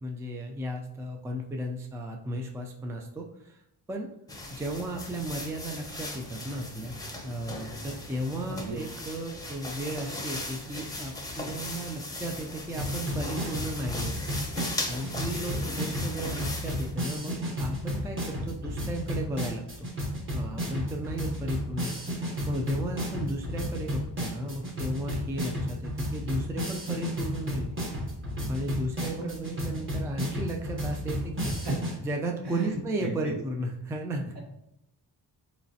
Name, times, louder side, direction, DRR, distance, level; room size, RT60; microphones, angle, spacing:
voice 1, 0.0-3.6 3.9-4.1 4.5-7.0 7.2-14.2 14.9-19.9 20.3-27.8 28.5-31.5 32.0-34.3, right 1 dB, 5° right, 2 dB, 0.4 m, -35 dB
sound 1, 4.3-16.9, left 2 dB, 10° left, 0.7 m, -38 dB
sound 2, 12.8-31.9, equal, 30° right, 1.0 m, -33 dB
voice 2, 31.4-31.7 32.5-33.1, right 2 dB, 65° right, -2 dB, 1.4 m, -34 dB
3.9 x 3.0 x 2.7 m, 0.81 s
cardioid pair, 70°, 44 cm